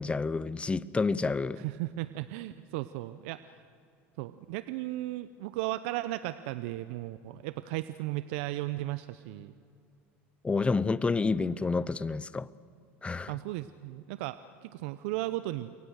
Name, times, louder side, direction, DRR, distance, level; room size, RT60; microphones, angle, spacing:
voice 1, 0.0-1.6 10.4-12.5 13.0-13.3, left 4 dB, 15° left, 0.7 m, -29 dB
voice 2, 1.6-3.5 4.2-9.6 13.3-15.7, right 16 dB, 70° right, 0.7 m, -36 dB
29.0 x 23.0 x 6.6 m
hypercardioid pair, 85°, 7 cm